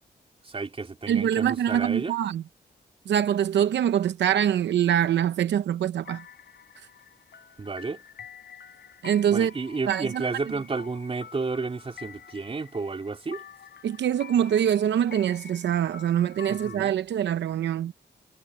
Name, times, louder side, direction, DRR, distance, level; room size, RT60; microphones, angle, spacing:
voice 1, 0.4-2.1 7.6-8.0 9.3-13.4 16.5-17.0, right 4 dB, 30° right, 3.2 m, -32 dB
voice 2, 1.1-2.4 3.1-6.2 9.0-9.5 9.9-10.3 13.8-17.9, right 10 dB, 85° right, 0.8 m, -24 dB
sound 1, 6.0-16.8, left 8 dB, 70° left, 7.8 m, -47 dB
cardioid pair, 100°, 18 cm